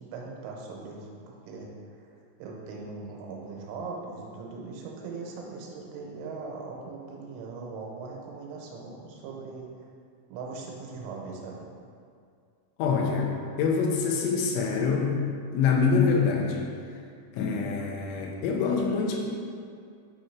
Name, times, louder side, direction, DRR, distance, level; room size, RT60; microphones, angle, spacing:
voice 1, 0.0-1.7 2.0-2.1 2.4-9.7 10.3-11.7, right 4 dB, 85° right, -1 dB, 3.4 m, -40 dB
voice 2, 12.8-15.1 15.5-16.7 17.3-19.2, left 5 dB, 85° left, 0 dB, 3.2 m, -25 dB
9.3 x 3.1 x 4.6 m, 2.3 s
omnidirectional pair, 5.5 m